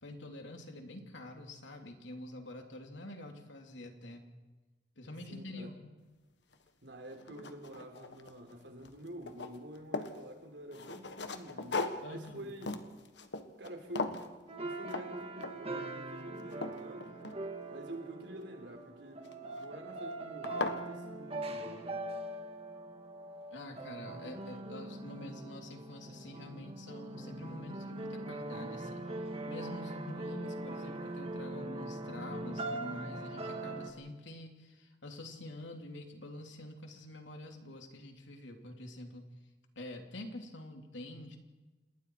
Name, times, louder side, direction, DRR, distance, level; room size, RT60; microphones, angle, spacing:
voice 1, 0.0-4.3 5.0-5.9 12.0-12.5 23.5-39.3 39.7-41.4, left 1 dB, 90° left, 3 dB, 3.0 m, -47 dB
voice 2, 5.3-5.7 6.8-12.9 13.6-14.2 14.5-17.2 17.7-22.0, right 1 dB, 70° right, 3 dB, 3.8 m, -48 dB
sound 1, 6.5-6.6 7.1-8.5 8.8-10.2 10.7-13.7 14.0-14.3 14.9-15.1 15.4-15.8 16.2-17.8 19.2-19.6 20.1-20.2 20.4-20.8, left 3 dB, 70° left, 1.5 m, -39 dB
sound 2, 14.5-33.9, right 2 dB, 35° right, 2.0 m, -42 dB
28.5 x 20.5 x 4.7 m, 1.2 s
head